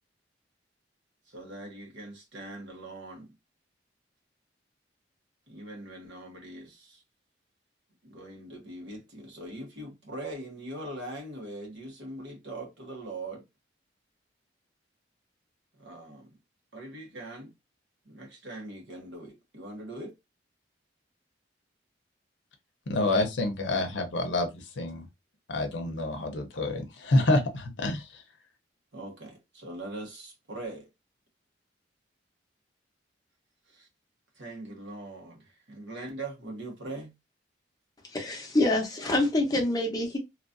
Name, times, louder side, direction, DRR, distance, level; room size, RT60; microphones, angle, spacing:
voice 1, 1.3-3.3 5.5-7.0 8.0-13.4 15.8-16.3 16.7-17.5 18.0-20.1 28.9-30.9 33.7-33.9 34.4-37.1, right 2 dB, 75° right, 1.2 m, -41 dB
voice 2, 22.9-25.1 25.5-28.2, left 2 dB, 75° left, 0.7 m, -28 dB
voice 3, 38.1-40.2, left 2 dB, 20° left, 0.8 m, -26 dB
3.0 x 2.5 x 2.5 m
head